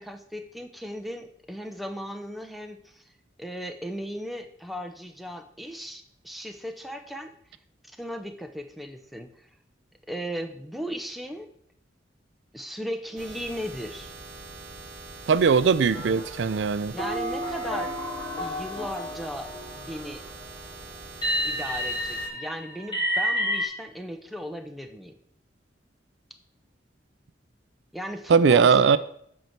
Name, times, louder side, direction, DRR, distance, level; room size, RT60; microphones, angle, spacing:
voice 1, 0.0-3.0 3.4-7.3 7.9-9.3 10.1-11.5 12.5-14.1 16.9-17.9 18.4-19.5 19.7-20.2 21.4-25.1 27.9-29.0, equal, ahead, 5 dB, 0.7 m, -36 dB
sound 1, 13.2-22.3, right 3 dB, 20° right, 2.2 m, -43 dB
voice 2, 15.3-16.9 28.3-29.0, right 5 dB, 75° right, 15 dB, 0.4 m, -19 dB
sound 2, 15.9-16.5 17.0-20.1 21.2-23.7, equal, 25° left, 2.1 m, -30 dB
8.2 x 4.6 x 5.8 m, 0.69 s
head